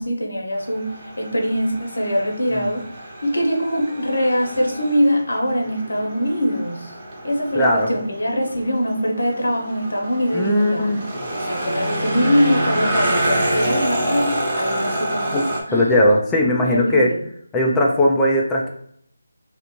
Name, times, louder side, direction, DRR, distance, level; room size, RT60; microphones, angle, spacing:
voice 1, 0.0-2.9 3.2-6.9 7.2-10.9 11.3-15.4 15.7-15.9 16.6-17.2, equal, 85° left, 1 dB, 1.0 m, -22 dB
sound 1, 0.5-15.6, right 1 dB, 30° right, 0.9 m, -27 dB
voice 2, 7.6-7.9 10.3-11.0 15.3-15.4 15.7-17.1 17.5-18.7, left 1 dB, 10° left, -3 dB, 0.3 m, -18 dB
3.3 x 2.5 x 2.9 m, 0.65 s
figure-of-eight pair, 165°, 0 cm